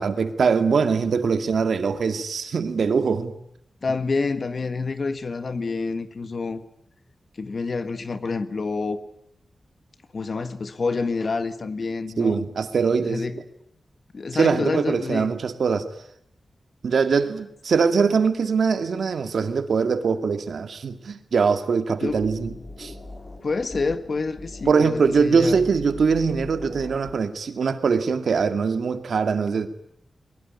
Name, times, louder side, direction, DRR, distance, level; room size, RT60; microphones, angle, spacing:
voice 1, 0.0-3.3 12.2-13.2 14.3-15.9 16.8-22.9 24.7-29.7, right 5 dB, 70° right, 2.2 m, -22 dB
voice 2, 3.8-6.6 7.4-9.0 10.1-12.4 13.0-13.4 14.1-15.3 22.0-22.2 23.4-25.6, left 4 dB, 45° left, 1.6 m, -28 dB
sound 1, 22.0-27.2, left 2 dB, 30° left, 4.8 m, -40 dB
22.5 x 22.0 x 9.9 m
wide cardioid pair, 180°, 0 cm